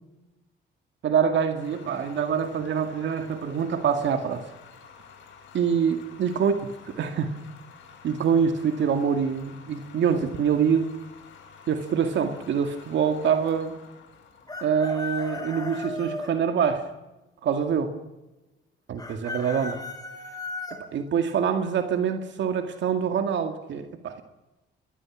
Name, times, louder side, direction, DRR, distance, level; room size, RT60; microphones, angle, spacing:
voice 1, 1.0-4.5 5.5-6.5 7.0-7.3 8.0-10.9 11.7-13.8 14.6-16.8 17.4-17.9 18.9-19.8 20.9-24.2, right 7 dB, 65° right, 7 dB, 2.1 m, -25 dB
sound 1, 1.5-16.5, left 6 dB, 75° left, 4.9 m, -50 dB
Chicken rooster, 14.5-16.3 19.0-20.8, left 3 dB, 20° left, 5.0 m, -35 dB
29.0 x 21.0 x 6.2 m, 1.0 s
cardioid pair, 90°, 20 cm